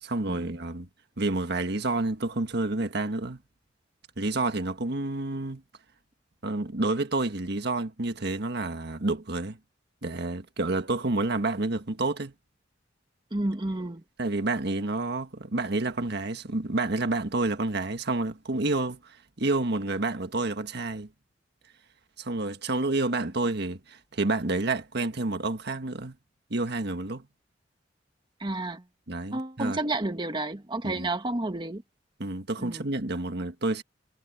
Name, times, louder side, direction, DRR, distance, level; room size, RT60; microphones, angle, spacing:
voice 1, 0.0-0.9 1.2-3.4 4.2-5.6 6.4-9.6 10.0-12.3 14.2-21.1 22.2-26.1 26.5-27.2 29.1-29.8 30.8-31.1 32.2-33.8, right 2 dB, 60° right, 1.6 m, -29 dB
voice 2, 13.3-14.0 28.4-28.8 29.3-31.8 32.6-32.9, right 2 dB, 25° right, 1.4 m, -31 dB
head